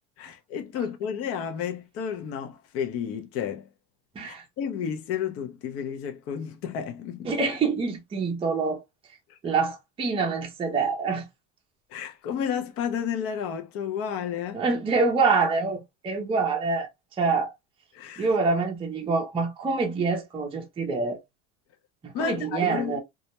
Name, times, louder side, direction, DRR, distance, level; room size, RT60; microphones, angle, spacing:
voice 1, 0.2-3.7 4.2-7.3 11.9-14.6 17.9-18.3 22.1-23.0, left 7 dB, 45° left, 0.6 m, -31 dB
voice 2, 7.3-8.8 9.4-11.2 14.5-16.9 17.2-17.5 18.2-21.2 22.0-23.0, right 4 dB, 15° right, 0.5 m, -26 dB
2.3 x 2.1 x 2.8 m
supercardioid pair, 125°, 32 cm